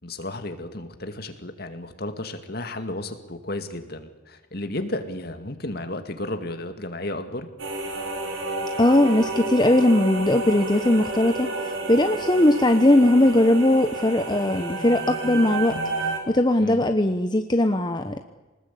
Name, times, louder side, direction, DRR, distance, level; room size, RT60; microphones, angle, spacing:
voice 1, 0.0-7.5 16.6-16.8, left 1 dB, 50° left, 7 dB, 2.2 m, -33 dB
sound 1, 7.6-16.2, right 2 dB, 80° right, 4.7 m, -30 dB
voice 2, 8.8-11.5 11.9-15.8 16.3-18.2, left 1 dB, 20° left, 7 dB, 0.9 m, -19 dB
24.5 x 20.0 x 8.5 m, 1.2 s
head